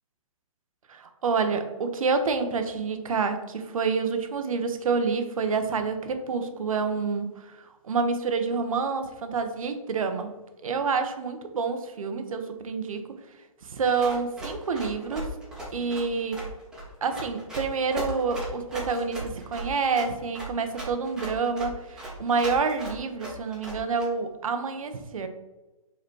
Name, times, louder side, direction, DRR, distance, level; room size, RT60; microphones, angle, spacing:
voice 1, 0.9-10.3 10.6-13.1 13.6-15.3 15.7-16.4 17.0-25.3, right 5 dB, 70° right, 7 dB, 1.0 m, -28 dB
Run, 14.0-24.0, right 1 dB, 5° right, 1.4 m, -37 dB
5.2 x 4.0 x 4.6 m, 1.1 s
hypercardioid pair, 150°, 19 cm